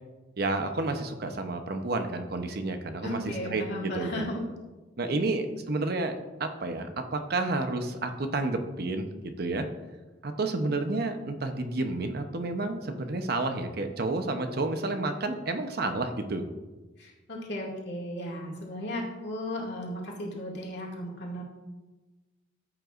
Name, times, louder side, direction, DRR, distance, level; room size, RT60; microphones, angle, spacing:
voice 1, 0.4-4.2 5.0-6.1 6.4-9.1 9.4-9.7 10.2-16.4, right 2 dB, 55° right, 6 dB, 0.8 m, -30 dB
voice 2, 3.0-4.5 5.0-5.3 17.0-21.4, left 1 dB, 60° left, -2 dB, 2.2 m, -35 dB
14.0 x 7.9 x 2.5 m, 1.2 s
head